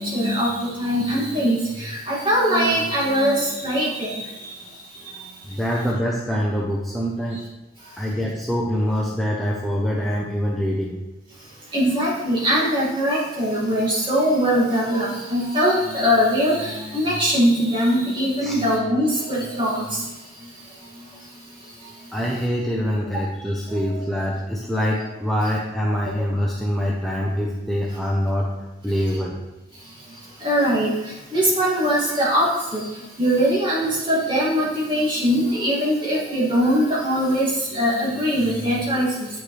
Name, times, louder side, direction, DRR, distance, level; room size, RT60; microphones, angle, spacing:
voice 1, 0.0-4.3 5.7-5.8 11.7-20.0 30.4-30.9 31.3-32.5 32.7-32.8 33.2-39.3, equal, 25° right, -6 dB, 2.2 m, -21 dB
voice 2, 5.5-7.4 8.0-11.0 18.4-18.5 22.1-28.5 28.8-29.4, equal, ahead, -4 dB, 0.6 m, -24 dB
7.7 x 6.3 x 3.3 m, 1.0 s
head